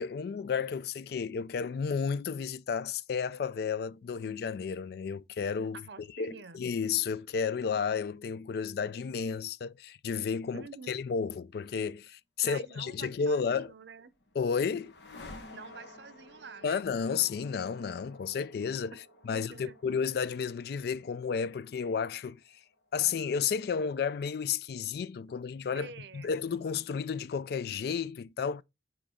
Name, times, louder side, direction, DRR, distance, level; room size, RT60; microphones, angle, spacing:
voice 1, 0.0-13.7 14.4-14.9 16.6-22.6 22.9-28.6, left 6 dB, 60° left, 0.3 m, -32 dB
voice 2, 5.7-6.6 10.5-11.0 12.4-14.1 15.5-16.9 19.3-19.8 25.7-26.3, right 5 dB, 75° right, 0.6 m, -47 dB
sound 1, 13.8-23.7, left 2 dB, 80° left, 1.2 m, -53 dB
6.2 x 3.1 x 4.9 m
head